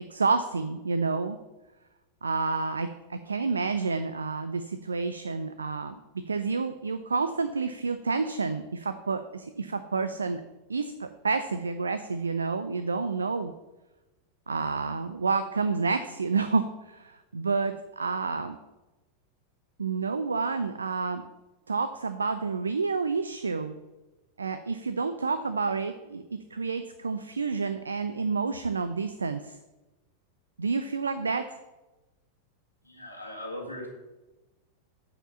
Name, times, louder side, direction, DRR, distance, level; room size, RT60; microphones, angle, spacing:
voice 1, 0.1-1.4 2.2-5.9 6.3-10.4 10.7-13.5 14.5-18.6 19.8-21.2 21.7-23.7 24.4-29.6 30.6-31.6, right 4 dB, 75° right, 10 dB, 0.5 m, -29 dB
voice 2, 32.8-33.9, left 1 dB, 85° left, -1 dB, 2.0 m, -39 dB
8.8 x 5.0 x 6.8 m, 1.1 s
figure-of-eight pair, 90°, 0 cm